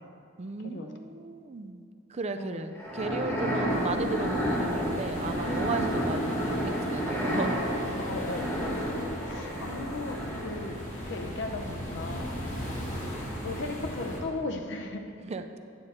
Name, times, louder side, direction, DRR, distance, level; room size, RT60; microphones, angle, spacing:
voice 1, 0.4-1.8 2.1-7.6 15.2-15.4, right 3 dB, 35° right, 8 dB, 0.4 m, -35 dB
voice 2, 2.4-2.7 5.8-6.0 7.9-10.8 11.1-12.3 13.4-15.0, left 2 dB, 65° left, 4 dB, 0.8 m, -37 dB
sound 1, 2.8-10.8, equal, 15° left, 1.5 m, -31 dB
sound 2, 3.7-14.2, equal, 40° left, 1.7 m, -37 dB
9.4 x 7.9 x 4.3 m, 2.4 s
head